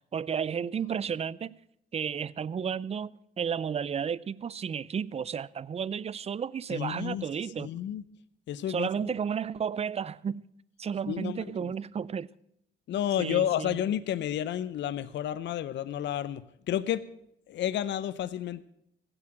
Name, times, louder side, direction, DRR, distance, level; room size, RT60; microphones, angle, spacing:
voice 1, 0.1-1.6 1.9-7.7 8.7-10.5 10.8-12.3 13.2-13.8, right 7 dB, 30° right, 0.4 m, -32 dB
voice 2, 6.7-7.3 7.6-8.0 8.5-9.1 11.1-11.7 12.9-17.1 17.5-18.6, left 11 dB, 65° left, 0.6 m, -31 dB
15.5 x 8.0 x 7.5 m
cardioid pair, 90°, 20 cm